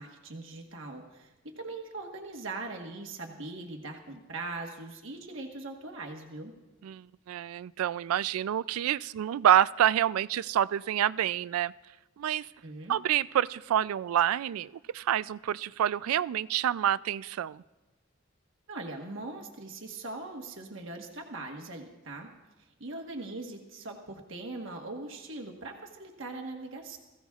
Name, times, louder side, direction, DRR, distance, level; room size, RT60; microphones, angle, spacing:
voice 1, 0.0-6.5 12.6-12.9 18.7-22.3 22.8-27.0, right 2 dB, 65° right, 2 dB, 1.3 m, -41 dB
voice 2, 6.8-11.7 12.2-12.5 12.9-17.6, right 10 dB, 90° right, 19 dB, 0.3 m, -27 dB
20.5 x 15.5 x 2.4 m, 1.1 s
head